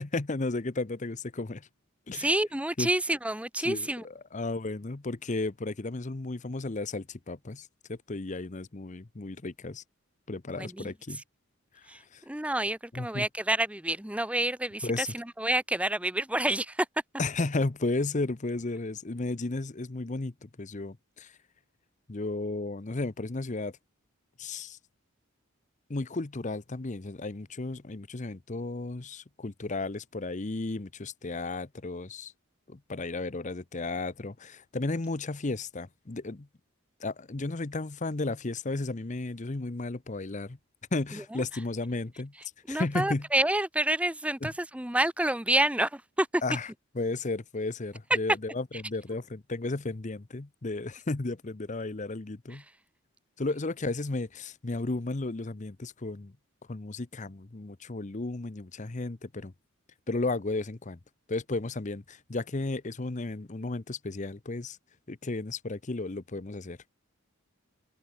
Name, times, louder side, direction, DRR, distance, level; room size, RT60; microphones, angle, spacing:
voice 1, 0.0-1.7 2.1-2.3 2.8-2.9 3.6-9.8 10.3-11.2 11.7-12.2 12.9-13.3 14.8-15.1 17.2-21.3 22.1-23.7 24.4-24.8 25.9-32.3 32.7-36.5 37.0-40.6 40.9-42.3 42.7-43.3 44.4-44.5 46.4-46.7 46.9-52.6 53.4-56.3 56.7-59.5 60.1-61.0 61.3-64.8 65.1-66.8, left 2 dB, 35° left, 0.8 m, -34 dB
voice 2, 2.1-4.0 10.6-10.9 11.9-16.9 41.1-41.4 42.7-46.4 52.5-52.6, right 1 dB, 5° right, 0.8 m, -28 dB
head